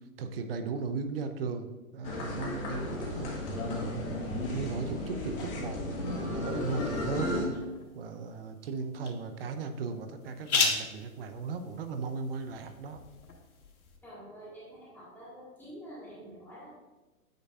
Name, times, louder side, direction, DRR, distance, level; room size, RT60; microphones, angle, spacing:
voice 1, 0.0-4.0 4.3-7.4 7.9-13.0, right 4 dB, 40° right, 8 dB, 0.6 m, -37 dB
sound 1, 2.0-7.5, left 1 dB, 35° left, 1.5 m, -34 dB
sound 2, 6.5-14.0, left 5 dB, 70° left, 1.4 m, -37 dB
voice 2, 14.0-16.7, equal, 5° left, -8 dB, 1.7 m, -47 dB
8.9 x 5.3 x 2.4 m, 1.2 s
hypercardioid pair, 140°, 44 cm